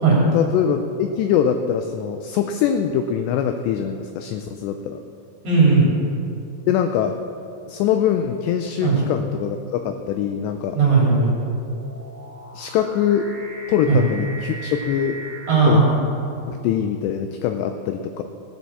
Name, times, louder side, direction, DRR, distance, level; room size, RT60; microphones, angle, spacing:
voice 1, 0.3-5.0 6.7-7.1 7.7-10.8 12.6-13.3 13.7-15.2 15.7-15.8 16.5-18.2, left 9 dB, 85° left, 7 dB, 2.5 m, -23 dB
voice 2, 5.4-5.9 8.8-9.0 10.7-11.4 13.9-14.0 15.5-16.0, right 4 dB, 40° right, -5 dB, 3.9 m, -16 dB
sound 1, 10.5-16.7, right 2 dB, 10° left, 2.6 m, -40 dB
16.0 x 7.5 x 7.0 m, 2.6 s
omnidirectional pair, 5.5 m